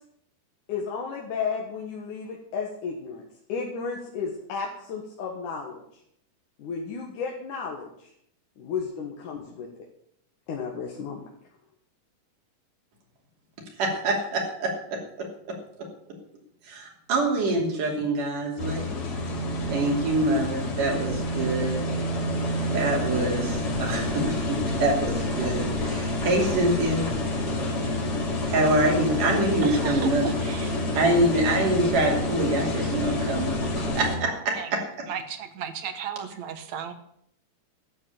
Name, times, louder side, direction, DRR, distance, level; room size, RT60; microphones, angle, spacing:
voice 1, 0.7-3.2 3.5-5.8 6.6-8.1 8.6-9.7 10.5-11.2, left 5 dB, 75° left, -1 dB, 3.1 m, -33 dB
voice 2, 13.8-15.0 16.7-18.9 19.7-21.8 22.7-27.1 28.5-30.3 30.9-33.6 33.9-34.8, right 2 dB, 85° right, 0 dB, 4.6 m, -25 dB
sound 1, 18.6-34.2, left 1 dB, 50° left, 3.2 m, -28 dB
voice 3, 29.6-30.8 33.6-33.7 34.6-34.7 35.1-36.9, right 8 dB, 65° right, 9 dB, 2.3 m, -35 dB
12.5 x 7.7 x 8.6 m, 0.71 s
omnidirectional pair, 3.6 m